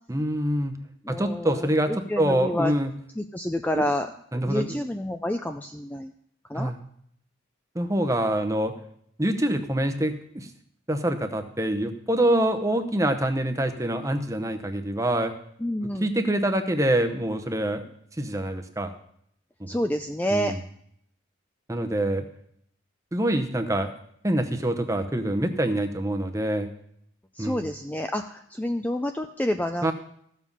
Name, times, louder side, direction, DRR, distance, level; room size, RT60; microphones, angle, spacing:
voice 1, 0.1-0.8 1.1-1.9 2.2-2.9 3.7-3.8 4.3-4.8 6.5-6.8 7.7-8.7 9.2-10.5 10.9-15.3 16.0-17.9 18.2-18.9 19.6-19.7 20.3-20.6 21.7-22.2 23.1-23.9 24.2-26.7 27.4-27.6 29.8-29.9, right 1 dB, 15° right, 7 dB, 0.8 m, -25 dB
voice 2, 1.0-2.7 3.2-4.1 4.4-6.1 6.5-6.7 15.6-16.1 19.7-20.5 27.3-29.9, left 1 dB, 10° left, 7 dB, 0.3 m, -28 dB
14.5 x 7.2 x 5.5 m, 0.69 s
head